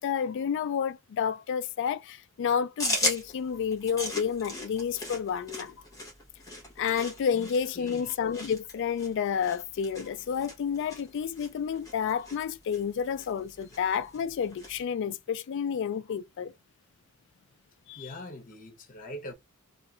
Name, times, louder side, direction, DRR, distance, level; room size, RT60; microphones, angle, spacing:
voice 1, 0.0-5.8 6.8-16.5 17.9-18.1, left 7 dB, 55° left, 0.3 m, -30 dB
sound 1, 2.8-14.8, left 1 dB, 15° left, 1.1 m, -38 dB
voice 2, 18.0-19.3, left 1 dB, 40° left, 0.8 m, -42 dB
2.7 x 2.5 x 2.4 m
head